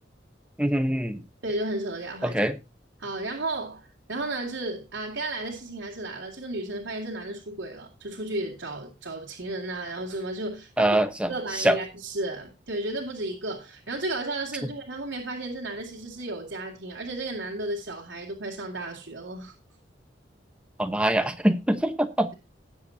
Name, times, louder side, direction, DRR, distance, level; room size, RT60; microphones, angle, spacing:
voice 1, 0.6-1.2 2.2-2.5 10.8-11.3 11.6-11.8 20.8-22.3, right 1 dB, 5° right, 1.0 m, -23 dB
voice 2, 1.4-2.4 3.0-10.9 11.3-19.5, right 2 dB, 85° right, 2.5 m, -33 dB
19.0 x 7.4 x 2.8 m
head